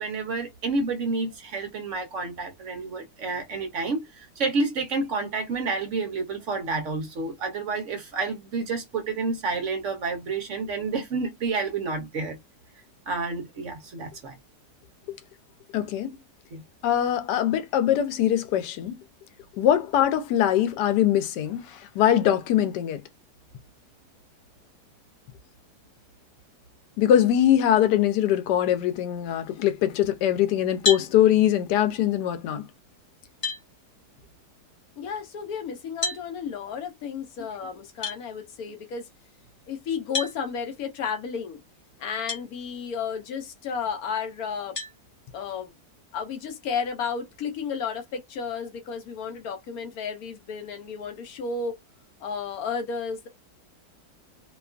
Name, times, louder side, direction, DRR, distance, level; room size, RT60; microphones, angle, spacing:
voice 1, 0.0-12.4 13.1-14.3 16.5-16.6, right 3 dB, 60° right, 0.9 m, -29 dB
voice 2, 15.7-16.1 16.8-18.9 19.6-21.6 22.0-23.0 27.0-32.6, left 11 dB, 90° left, 1.2 m, -22 dB
sound 1, 30.8-31.1 32.8-32.9 33.4-33.6 36.0-36.2 38.0-38.2 40.1-40.4 42.3-42.4 43.1-43.2 44.8-45.0, left 3 dB, 35° left, 0.8 m, -28 dB
voice 3, 35.0-39.1 39.7-41.6 42.0-44.8 45.3-45.7 46.1-51.7 52.2-53.3, left 6 dB, 70° left, 1.1 m, -32 dB
2.9 x 2.3 x 2.4 m
omnidirectional pair, 1.7 m